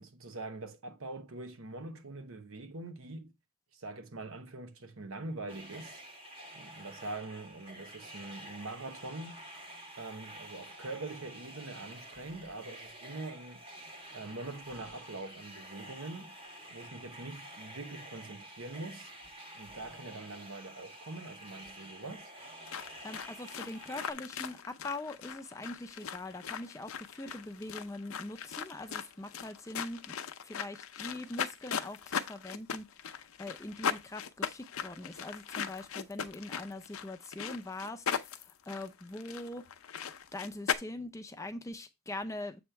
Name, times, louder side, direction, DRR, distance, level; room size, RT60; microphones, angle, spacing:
voice 1, 0.0-3.3 3.7-6.0 6.5-9.4 10.0-13.6 14.1-16.3 16.7-19.1 19.5-22.3, right 2 dB, 70° right, 1.0 m, -43 dB
sound 1, 5.5-24.1, right 1 dB, 25° right, 1.2 m, -49 dB
sound 2, 22.7-40.7, left 7 dB, 70° left, 0.6 m, -39 dB
voice 2, 23.0-30.1 30.4-39.6 40.3-42.6, left 2 dB, 15° left, 0.5 m, -42 dB
7.8 x 3.2 x 4.5 m
head